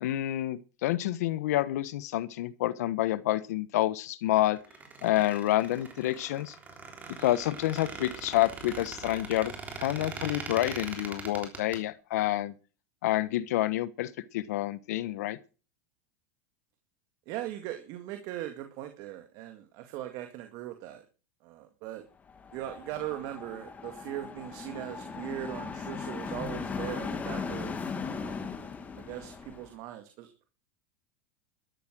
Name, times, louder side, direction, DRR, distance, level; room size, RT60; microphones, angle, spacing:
voice 1, 0.0-4.6 5.0-6.5 7.2-9.5 9.8-12.5 13.0-15.4, left 15 dB, 80° left, 1.3 m, -28 dB
Squeak, 4.6-11.8, right 4 dB, 20° right, 3.4 m, -41 dB
voice 2, 17.3-21.0 21.4-22.0 22.5-28.5 29.0-30.5, right 13 dB, 50° right, 2.0 m, -40 dB
sound 1, 22.3-29.7, left 5 dB, 20° left, 2.4 m, -38 dB
13.0 x 11.5 x 6.3 m
supercardioid pair, 150°, 9 cm